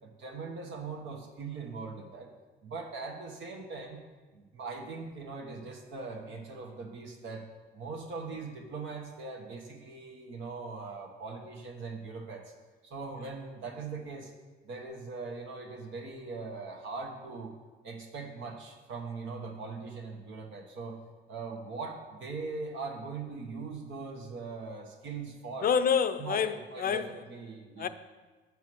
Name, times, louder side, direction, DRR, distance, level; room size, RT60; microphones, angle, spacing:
voice 1, 0.0-2.3 2.6-4.0 4.3-7.5 7.7-12.5 12.8-14.3 14.6-17.6 17.8-21.0 21.3-25.7 26.2-27.9, right 4 dB, 75° right, 1.1 m, -41 dB
voice 2, 25.6-27.2 27.8-27.9, left 7 dB, 45° left, 0.5 m, -28 dB
7.1 x 4.7 x 6.1 m
cardioid pair, 90°, 20 cm